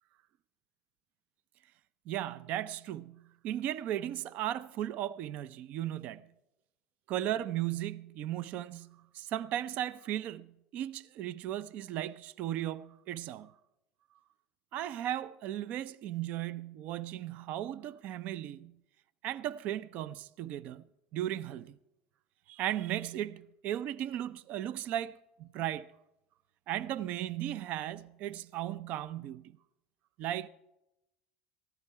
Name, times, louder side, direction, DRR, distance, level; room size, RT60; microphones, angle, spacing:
voice 1, 2.1-6.3 7.1-13.5 14.7-18.8 19.2-20.8 21.1-21.8 22.5-25.9 26.7-29.6 30.2-30.5, right 12 dB, 60° right, 0.4 m, -36 dB
15.5 x 13.0 x 4.7 m
supercardioid pair, 100°, 3 cm